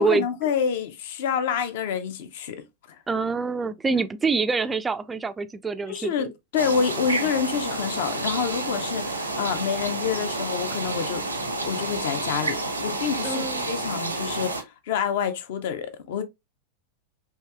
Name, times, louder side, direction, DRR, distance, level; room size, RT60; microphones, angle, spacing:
voice 1, 0.0-2.6 5.9-11.2 11.6-14.5 14.9-16.2, left 7 dB, 55° left, 0.6 m, -27 dB
voice 2, 3.1-6.3 13.2-13.7, right 4 dB, 15° right, 0.3 m, -26 dB
sound 1, 6.6-14.6, right 2 dB, 85° right, 0.7 m, -29 dB
4.5 x 2.8 x 2.2 m
figure-of-eight pair, 90°, 0 cm